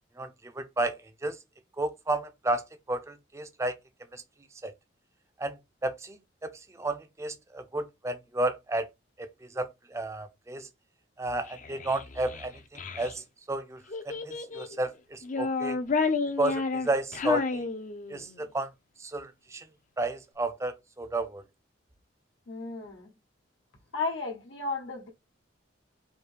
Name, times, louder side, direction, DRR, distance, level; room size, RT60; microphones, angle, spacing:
voice 1, 0.2-1.4 1.8-3.7 4.1-4.2 4.6-4.7 5.4-6.2 6.4-6.5 6.8-8.9 9.2-9.3 9.5-10.7 11.2-12.6 12.9-13.8 14.0-15.8 16.4-17.6 18.1-18.7 19.0-19.6 20.0-21.4, right 2 dB, 15° right, 0.4 m, -32 dB
Child speech kid speaking, 11.5-13.1 13.9-14.8 15.2-18.4, left 4 dB, 40° left, 0.5 m, -31 dB
voice 2, 22.5-23.1 23.9-25.1, left 3 dB, 80° left, 1.1 m, -34 dB
4.5 x 2.6 x 3.3 m
head